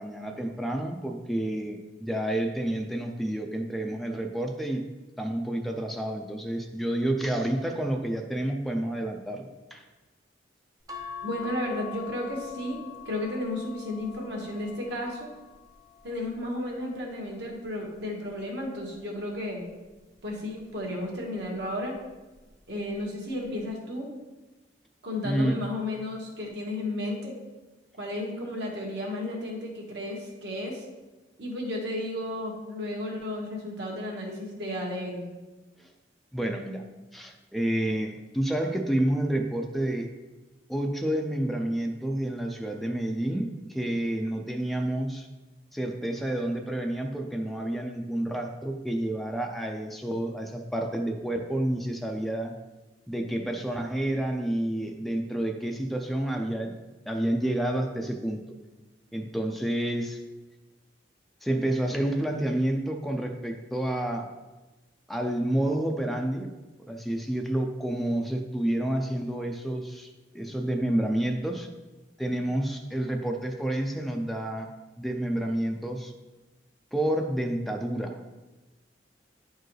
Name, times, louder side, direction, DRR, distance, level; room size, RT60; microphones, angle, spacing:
voice 1, 0.0-4.9 5.2-9.8 25.2-25.6 36.3-36.8 37.1-40.1 40.7-45.3 45.7-52.5 53.1-56.7 57.1-58.4 59.1-60.2 61.4-64.3 65.1-66.5 66.8-71.7 72.2-74.7 75.0-76.1 76.9-78.2, right 1 dB, ahead, 3 dB, 0.4 m, -29 dB
sound 1, 10.9-17.5 18.1-19.5 20.8-21.2 21.5-21.6, left 7 dB, 20° right, 0.8 m, -45 dB
voice 2, 11.2-15.3 16.0-19.6 20.2-21.9 22.7-24.1 25.0-27.3 27.9-30.8 31.4-35.2, left 1 dB, 65° right, -1 dB, 1.6 m, -33 dB
9.9 x 4.5 x 3.2 m, 1.1 s
head